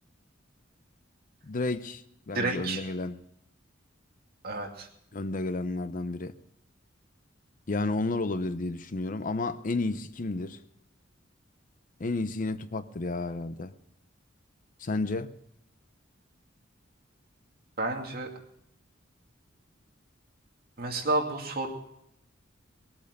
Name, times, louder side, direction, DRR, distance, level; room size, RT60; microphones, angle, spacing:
voice 1, 1.4-3.2 5.1-6.3 7.7-10.6 12.0-13.7 14.8-15.3, left 2 dB, 45° left, 0.6 m, -31 dB
voice 2, 2.3-2.8 4.4-4.9 17.8-18.3 20.8-21.7, right 2 dB, 50° right, 2.5 m, -30 dB
20.0 x 8.6 x 6.7 m
head